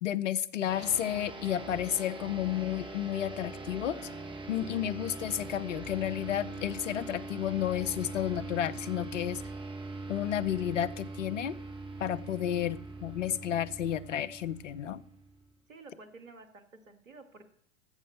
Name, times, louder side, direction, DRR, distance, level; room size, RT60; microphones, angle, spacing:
voice 1, 0.0-4.0 4.5-9.4 10.1-11.6 12.0-15.0, left 11 dB, 70° left, 18 dB, 0.8 m, -32 dB
sound 1, 0.7-15.5, right 2 dB, 10° right, 1.6 m, -42 dB
voice 2, 15.7-17.5, right 3 dB, 80° right, 8 dB, 1.9 m, -51 dB
14.5 x 5.3 x 6.8 m, 0.70 s
figure-of-eight pair, 100°, 38 cm